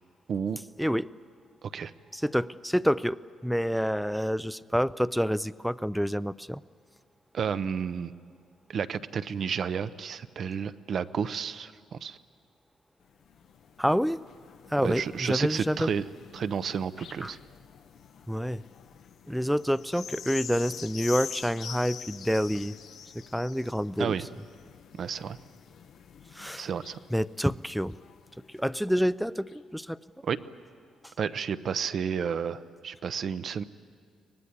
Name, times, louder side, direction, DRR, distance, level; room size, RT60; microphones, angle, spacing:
voice 1, 1.6-1.9 7.3-8.1 8.7-12.2 14.8-16.0 16.3-17.4 24.0-24.3 24.9-25.4 26.6-27.0 30.2-30.4 31.2-33.6, right 7 dB, 55° right, 13 dB, 0.8 m, -31 dB
voice 2, 2.1-6.6 13.8-14.2 14.7-15.9 17.2-17.3 18.3-18.6 19.3-22.7 23.3-24.1 26.3-26.7 27.1-27.9 28.5-30.0, equal, ahead, 17 dB, 0.5 m, -28 dB
sound 1, 13.0-28.9 29.5-29.6, left 8 dB, 65° left, 0.9 m, -46 dB
24.0 x 19.0 x 9.7 m, 2.3 s
cardioid pair, 90°, 0 cm